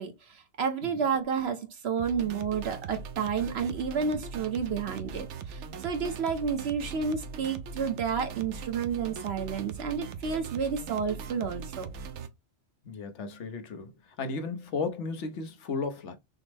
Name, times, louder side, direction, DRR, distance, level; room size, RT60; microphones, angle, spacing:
voice 1, 0.0-11.9, right 6 dB, 65° right, 1.1 m, -31 dB
sound 1, 2.0-12.3, right 5 dB, 90° right, 1.0 m, -40 dB
voice 2, 12.8-13.9 14.2-16.2, left 4 dB, 85° left, 1.1 m, -34 dB
6.1 x 2.0 x 3.3 m
omnidirectional pair, 1.2 m